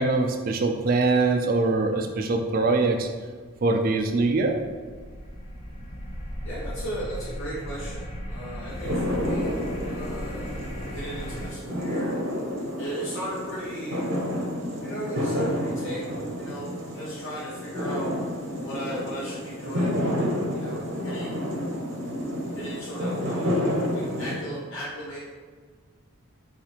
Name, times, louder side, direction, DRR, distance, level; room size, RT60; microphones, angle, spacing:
voice 1, 0.0-3.1 3.6-4.7, right 3 dB, 40° right, 4 dB, 0.3 m, -23 dB
sound 1, 3.5-11.5, equal, 25° left, 0.5 m, -37 dB
voice 2, 6.4-9.6 9.9-10.6 10.9-12.1 12.8-14.1 14.8-16.1 16.4-18.1 18.6-21.5 22.5-25.2, equal, 65° left, -8 dB, 0.7 m, -36 dB
sound 2, 8.7-24.4, equal, 65° right, 0.8 m, -30 dB
4.0 x 2.4 x 3.0 m, 1.5 s
head